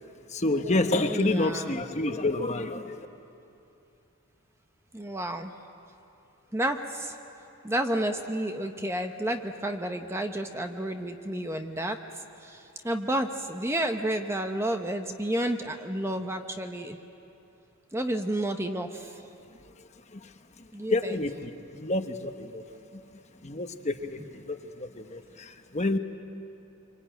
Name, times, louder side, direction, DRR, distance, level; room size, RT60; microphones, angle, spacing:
voice 1, 0.3-3.1 20.1-20.2 20.9-22.6 23.4-24.2 24.5-26.0, left 2 dB, 30° left, 7 dB, 1.0 m, -28 dB
voice 2, 1.1-1.8 4.9-5.5 6.5-7.2 7.6-12.0 12.4-17.0 17.9-19.2 20.7-21.2 24.2-24.3, right 1 dB, 10° right, 5 dB, 0.9 m, -31 dB
25.5 x 25.0 x 9.2 m, 2.8 s
head